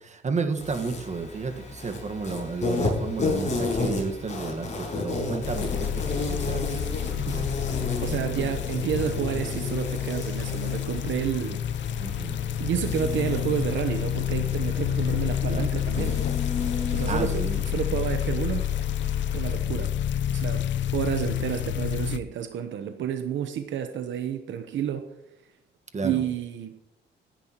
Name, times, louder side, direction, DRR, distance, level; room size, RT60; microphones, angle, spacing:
voice 1, 0.0-7.5 8.1-8.6 12.0-12.4 15.5-15.7 17.1-18.2 25.9-26.2, right 4 dB, 35° right, 6 dB, 1.5 m, -33 dB
Insect, 0.6-19.5, left 3 dB, 35° left, 5.5 m, -33 dB
sound 1, 5.4-22.2, left 10 dB, 70° left, 0.6 m, -29 dB
voice 2, 8.0-11.6 12.6-16.2 16.9-18.7 19.3-20.0 20.3-25.1 26.0-26.8, right 9 dB, 70° right, 8 dB, 1.0 m, -30 dB
19.0 x 10.5 x 3.0 m, 0.83 s
cardioid pair, 90°, 20 cm